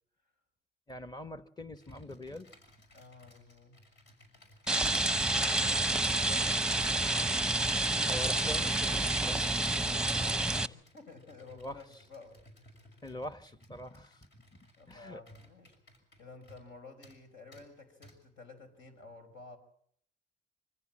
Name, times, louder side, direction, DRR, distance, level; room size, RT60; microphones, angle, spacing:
voice 1, 0.9-2.5 8.1-9.4 11.5-11.8 13.0-14.6 14.9-15.2, left 1 dB, 20° left, 1.1 m, -43 dB
Computer keyboard, 1.7-16.7 17.0-17.2 17.5-17.7 18.0-18.2, equal, 60° left, 6.3 m, -59 dB
voice 2, 2.9-3.8 5.6-7.0 10.1-12.4 14.8-15.8 16.2-19.6, left 3 dB, 80° left, 5.0 m, -52 dB
Rain, 4.7-10.7, right 2 dB, 5° right, 0.9 m, -29 dB
25.0 x 15.5 x 7.5 m
cardioid pair, 90°, 20 cm